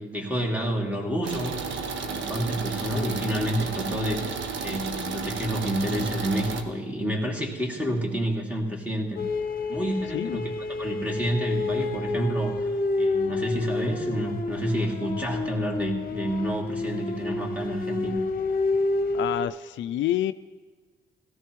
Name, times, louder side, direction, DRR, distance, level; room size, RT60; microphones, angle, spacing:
voice 1, 0.0-1.6 2.0-4.2 4.6-9.2 9.7-10.5 10.8-12.7 13.0-18.2, equal, 5° right, -1 dB, 2.6 m, -29 dB
sound 1, 1.2-6.6, right 5 dB, 70° right, 1.2 m, -32 dB
sound 2, 9.2-19.5, left 3 dB, 45° left, 1.0 m, -29 dB
voice 2, 10.1-10.5 19.1-20.3, left 13 dB, 70° left, 12 dB, 0.4 m, -28 dB
17.5 x 15.0 x 3.1 m, 1.5 s
cardioid pair, 90°, 20 cm